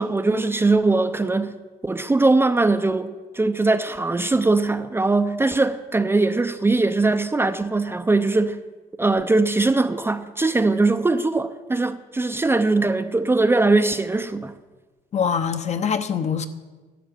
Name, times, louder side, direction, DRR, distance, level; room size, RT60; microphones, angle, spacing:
voice 1, 0.0-1.5 1.8-8.6 9.0-14.5, right 3 dB, 15° right, 0.6 m, -21 dB
voice 2, 15.1-16.5, left 7 dB, 40° left, 1.0 m, -23 dB
11.0 x 11.0 x 7.8 m
cardioid pair, 110°, 17 cm